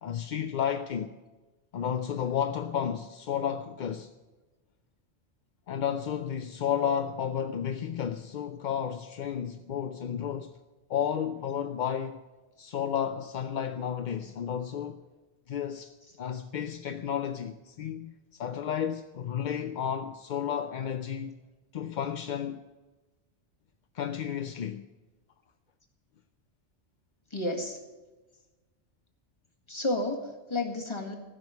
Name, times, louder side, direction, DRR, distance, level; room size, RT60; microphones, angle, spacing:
voice 1, 0.0-1.1 1.7-4.1 5.7-10.5 10.9-12.2 12.6-15.0 15.5-21.4 21.7-22.6 23.9-24.8, left 8 dB, 55° left, 0.5 m, -32 dB
voice 2, 27.3-27.8 29.7-31.1, left 2 dB, 25° left, 1.8 m, -31 dB
15.0 x 6.4 x 9.5 m
omnidirectional pair, 1.2 m